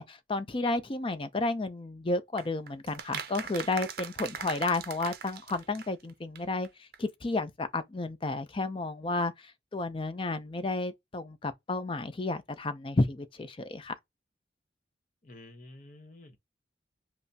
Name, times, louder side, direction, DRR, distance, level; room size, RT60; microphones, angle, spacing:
voice 1, 0.0-13.9, left 2 dB, 30° left, 0.5 m, -32 dB
sound 1, 2.4-6.4 6.6-6.7 6.9-7.0, right 7 dB, 55° right, 0.6 m, -40 dB
voice 2, 15.2-16.4, left 1 dB, 45° left, 0.9 m, -50 dB
5.5 x 2.0 x 2.7 m
head